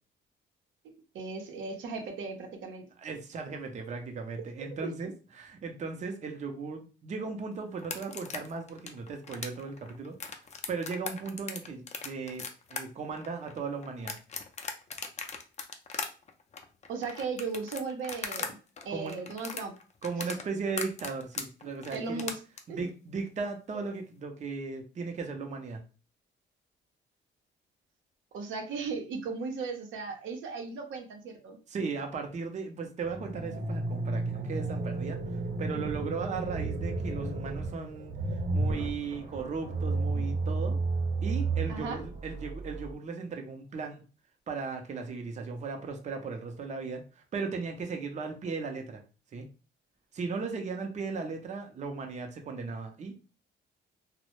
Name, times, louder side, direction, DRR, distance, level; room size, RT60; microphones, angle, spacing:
voice 1, 0.8-2.9 4.8-4.9 16.9-18.6 18.8-19.7 21.9-22.4 22.7-22.8 28.3-31.6 41.7-42.0, right 4 dB, 80° right, 3 dB, 0.6 m, -36 dB
voice 2, 3.0-10.2 10.7-14.2 18.9-19.2 20.0-22.3 22.7-25.8 31.7-38.1 38.5-40.8 41.2-44.0 44.5-49.0 49.3-49.5 50.1-53.2, right 4 dB, 35° right, 3 dB, 0.5 m, -37 dB
sound 1, 7.8-18.5 18.8-22.6, left 5 dB, 35° left, 0.4 m, -38 dB
sound 2, 33.0-42.9, right 3 dB, 50° right, 0.9 m, -32 dB
2.0 x 2.0 x 2.9 m, 0.35 s
cardioid pair, 90°, 20 cm